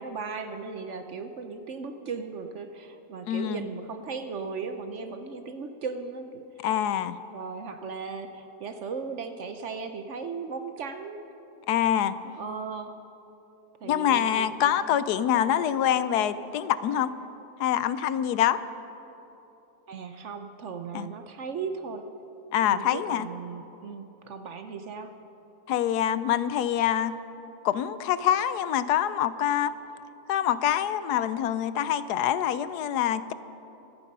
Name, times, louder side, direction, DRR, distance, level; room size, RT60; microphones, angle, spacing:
voice 1, 0.0-6.4 7.3-11.2 12.4-12.9 13.8-14.8 19.9-22.0 22.6-25.1, right 5 dB, 60° right, 8 dB, 0.9 m, -37 dB
voice 2, 3.3-3.7 6.6-7.2 11.7-12.1 13.8-17.1 17.6-18.6 20.9-21.1 22.5-23.3 25.7-27.1 27.6-29.7 30.3-33.3, left 10 dB, 80° left, 14 dB, 1.1 m, -25 dB
24.5 x 9.2 x 5.4 m, 3.0 s
omnidirectional pair, 1.7 m